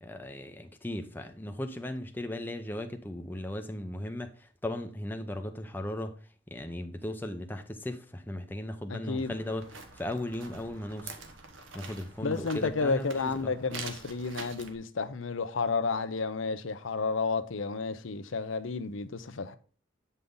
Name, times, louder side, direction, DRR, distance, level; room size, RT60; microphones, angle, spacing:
voice 1, 0.0-6.1 6.5-11.2 11.7-13.5, left 1 dB, 10° left, 0.6 m, -37 dB
voice 2, 8.9-9.3 12.2-19.6, left 4 dB, 75° left, 0.6 m, -31 dB
sound 1, 9.2-14.7, right 4 dB, 70° right, 1.3 m, -46 dB
8.3 x 5.5 x 3.8 m
head